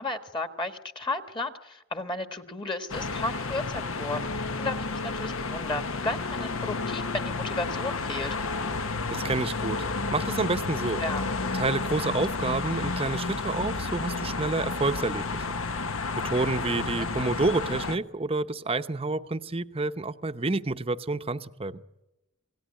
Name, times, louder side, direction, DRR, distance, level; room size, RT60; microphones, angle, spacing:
voice 1, 0.0-8.4 11.0-11.2 16.9-17.1, left 2 dB, 20° left, 8 dB, 1.5 m, -34 dB
sound 1, 2.9-18.0, left 3 dB, 70° left, 1.2 m, -31 dB
voice 2, 9.1-9.8 10.1-11.0 11.5-15.4 16.2-21.8, right 3 dB, 25° right, 11 dB, 0.8 m, -29 dB
27.5 x 18.0 x 9.7 m, 0.96 s
head